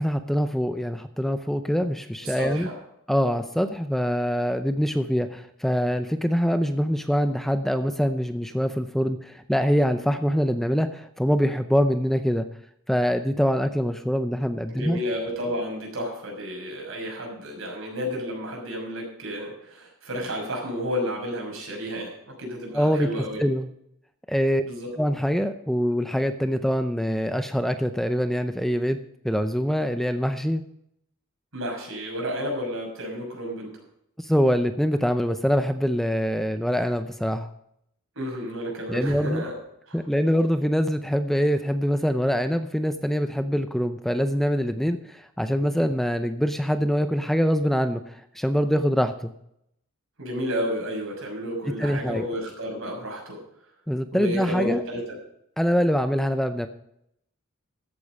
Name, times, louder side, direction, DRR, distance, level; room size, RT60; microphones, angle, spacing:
voice 1, 0.0-2.7 3.1-12.5 12.9-15.0 22.7-23.7 24.3-24.6 25.0-29.0 29.2-30.6 34.2-37.5 38.9-39.4 39.9-49.3 51.7-52.3 53.9-54.8 55.6-56.7, equal, ahead, 9 dB, 0.6 m, -24 dB
voice 2, 2.2-2.7 14.7-23.5 24.6-24.9 31.5-33.8 38.2-39.6 39.9-40.0 50.2-53.4 54.1-55.2, equal, 70° right, 0 dB, 5.9 m, -31 dB
14.0 x 8.5 x 5.4 m, 0.75 s
head